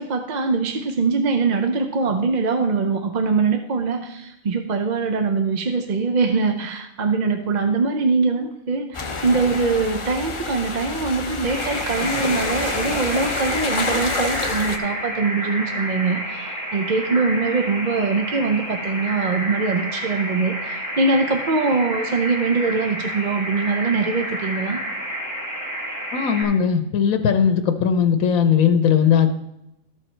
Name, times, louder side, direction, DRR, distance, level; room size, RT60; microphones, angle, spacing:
voice 1, 0.0-24.8, right 4 dB, 45° right, 5 dB, 0.6 m, -22 dB
sound 1, 8.9-14.8, left 4 dB, 35° left, 0.5 m, -28 dB
sound 2, 11.4-26.4, right 1 dB, 15° right, 1.8 m, -30 dB
voice 2, 26.1-29.4, left 7 dB, 85° left, 8 dB, 1.2 m, -18 dB
13.5 x 4.8 x 4.4 m, 0.88 s
omnidirectional pair, 1.4 m